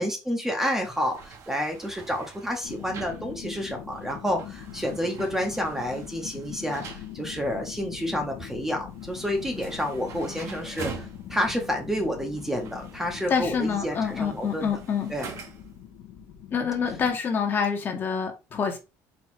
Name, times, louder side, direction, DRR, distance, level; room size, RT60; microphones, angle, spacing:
voice 1, 0.0-14.7 15.1-15.3, equal, 5° right, 0.7 m, -29 dB
sound 1, 0.7-15.8, right 5 dB, 45° right, 0.9 m, -46 dB
sound 2, 2.6-17.1, left 11 dB, 65° left, 0.7 m, -42 dB
voice 2, 13.3-15.1 16.5-18.8, left 6 dB, 30° left, 0.8 m, -27 dB
4.3 x 2.3 x 4.2 m
cardioid pair, 150°, 7 cm